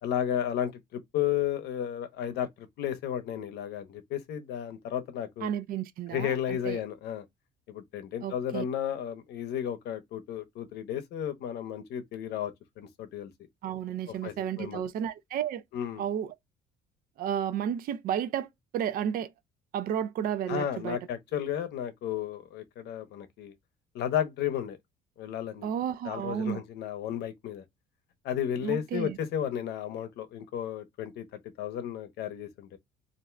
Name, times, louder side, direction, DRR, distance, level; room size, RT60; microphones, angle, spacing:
voice 1, 0.0-5.5 6.1-7.2 7.7-13.3 14.1-14.8 15.7-16.0 20.5-23.5 23.9-24.8 25.2-25.7 26.0-27.6 28.2-31.3 31.6-32.8, left 10 dB, 75° left, 0.7 m, -33 dB
voice 2, 5.4-6.8 8.2-8.6 13.6-15.6 16.0-16.3 17.2-19.3 19.7-21.0 25.6-26.6 28.6-29.2, right 9 dB, 60° right, 0.5 m, -32 dB
2.5 x 2.3 x 3.1 m
cardioid pair, 110°, 17 cm